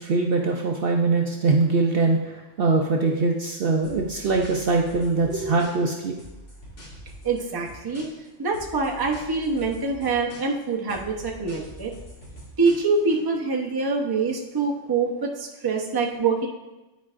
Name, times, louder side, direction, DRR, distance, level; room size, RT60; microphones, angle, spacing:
voice 1, 0.0-6.2, right 3 dB, 60° right, 1 dB, 0.7 m, -22 dB
sound 1, 3.8-5.9 6.2-8.3 8.5-10.6 10.9-13.2, equal, 70° left, 2.3 m, -44 dB
voice 2, 7.2-8.1 8.4-11.9 12.6-16.5, right 4 dB, 25° right, 0 dB, 0.6 m, -25 dB
10.5 x 4.7 x 2.5 m, 1.1 s
omnidirectional pair, 1.3 m